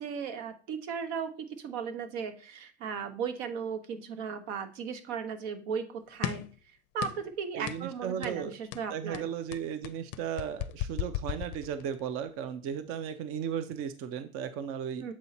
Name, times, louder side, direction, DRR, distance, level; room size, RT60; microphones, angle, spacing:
voice 1, 0.0-1.3 1.6-6.5 6.9-9.2 15.0-15.1, right 6 dB, 80° right, 8 dB, 1.2 m, -36 dB
sound 1, 6.2-6.6 7.0-7.3 7.7-7.9 8.2-8.4 8.7-12.0, left 13 dB, 50° left, 0.5 m, -36 dB
voice 2, 7.5-8.5 8.9-15.1, right 8 dB, 40° right, 11 dB, 0.5 m, -35 dB
7.3 x 4.2 x 4.1 m, 0.38 s
cardioid pair, 150°, 33 cm